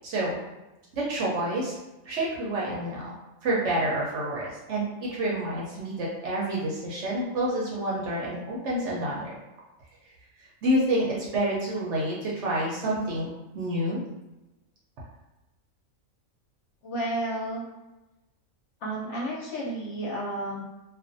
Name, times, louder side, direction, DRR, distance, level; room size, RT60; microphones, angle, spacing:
voice 1, 0.0-0.4 0.9-1.8 2.1-3.1 3.4-9.3 10.6-14.0, right 1 dB, 65° right, -4 dB, 0.8 m, -28 dB
voice 2, 16.8-17.6 18.8-20.6, right 1 dB, 60° left, -5 dB, 0.9 m, -31 dB
2.4 x 2.3 x 2.5 m, 1.0 s
omnidirectional pair, 1.5 m